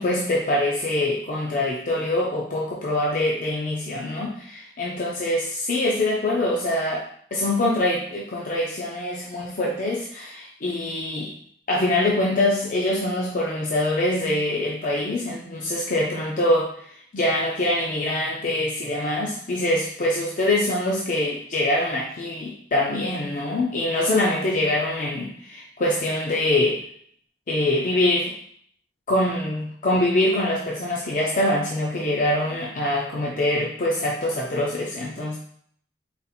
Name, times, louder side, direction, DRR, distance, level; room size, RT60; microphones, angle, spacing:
voice 1, 0.0-7.0 7.3-11.3 11.7-16.9 17.1-26.8 27.5-28.4 29.1-35.4, left 1 dB, 50° left, -3 dB, 0.5 m, -24 dB
4.1 x 2.5 x 4.1 m, 0.62 s
head